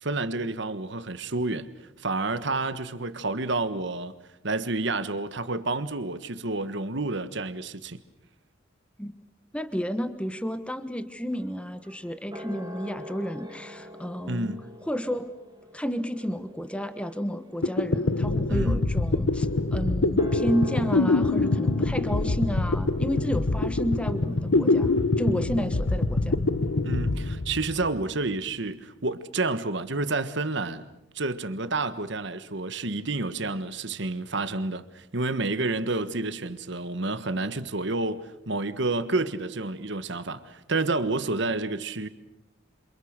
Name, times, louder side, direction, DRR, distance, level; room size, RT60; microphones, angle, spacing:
voice 1, 0.0-1.7 2.0-4.1 4.4-8.0 14.3-14.6 18.5-18.8 26.8-30.9 31.1-42.1, right 2 dB, 65° right, 1.5 m, -29 dB
voice 2, 9.5-14.5 14.8-15.3 15.7-26.4, equal, 5° left, 1.2 m, -31 dB
sound 1, 11.3-25.1, left 1 dB, 20° right, 2.4 m, -45 dB
sound 2, 17.3-17.4 17.6-28.1, left 2 dB, 80° left, 1.0 m, -25 dB
28.0 x 27.0 x 6.7 m
head